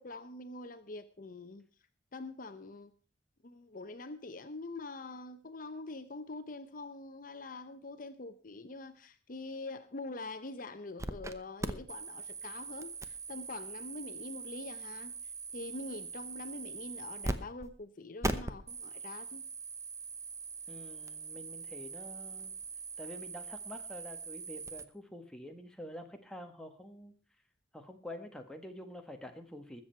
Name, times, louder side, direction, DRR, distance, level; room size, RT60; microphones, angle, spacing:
voice 1, 0.0-1.7 2.1-2.9 3.4-15.1 15.5-19.4, left 2 dB, 50° left, 0.8 m, -44 dB
sound 1, 11.0-11.3 11.6-17.4 17.6-17.7 18.2-24.8, right 3 dB, 15° right, 0.8 m, -41 dB
voice 2, 20.7-22.5 23.0-27.1 27.7-29.8, left 1 dB, 5° left, 1.4 m, -47 dB
20.5 x 7.6 x 4.5 m
head